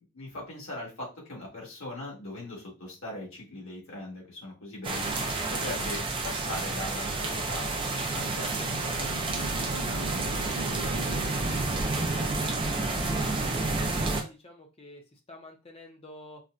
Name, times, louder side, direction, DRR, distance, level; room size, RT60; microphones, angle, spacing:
voice 1, 0.1-5.1 5.5-7.7 8.1-11.0, left 1 dB, 70° left, -4 dB, 1.6 m, -40 dB
sound 1, 4.8-14.2, right 3 dB, 25° right, 0.4 m, -30 dB
sound 2, 7.5-13.9, right 4 dB, 90° right, 0.4 m, -41 dB
voice 2, 12.7-13.3 13.5-16.4, left 1 dB, 25° left, 2 dB, 0.6 m, -48 dB
4.1 x 2.2 x 2.5 m, 0.30 s
head